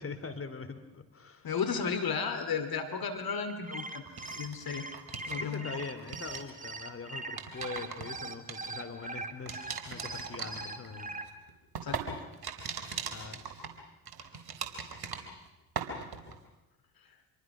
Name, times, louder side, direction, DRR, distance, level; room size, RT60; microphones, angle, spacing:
voice 1, 0.0-1.5 5.2-11.1 13.1-13.4, left 4 dB, 25° left, 8 dB, 2.8 m, -42 dB
voice 2, 1.4-4.9 5.3-5.8 11.8-12.2, left 6 dB, 45° left, 8 dB, 2.7 m, -34 dB
sound 1, 3.5-11.2, right 2 dB, 15° right, 2.8 m, -41 dB
sound 2, 4.1-5.6 5.8-6.5 7.1-9.1 9.5-15.5 15.8-16.3, right 5 dB, 50° right, 4.1 m, -40 dB
26.5 x 23.5 x 6.1 m, 1.0 s
hypercardioid pair, 55°, 48 cm